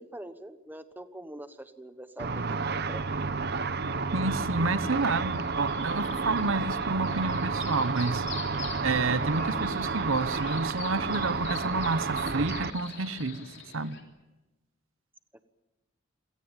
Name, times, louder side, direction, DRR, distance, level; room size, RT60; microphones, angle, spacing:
voice 1, 0.0-3.0, right 1 dB, 10° right, 10 dB, 1.1 m, -44 dB
Car / Traffic noise roadway noise / Engine, 2.2-12.7, right 4 dB, 50° right, 0.9 m, -31 dB
voice 2, 4.1-8.3 8.8-14.0, right 3 dB, 75° right, 14 dB, 1.0 m, -29 dB
sound 1, 4.8-14.0, left 7 dB, 60° left, 3.5 m, -45 dB
28.0 x 17.5 x 9.0 m, 1.1 s
head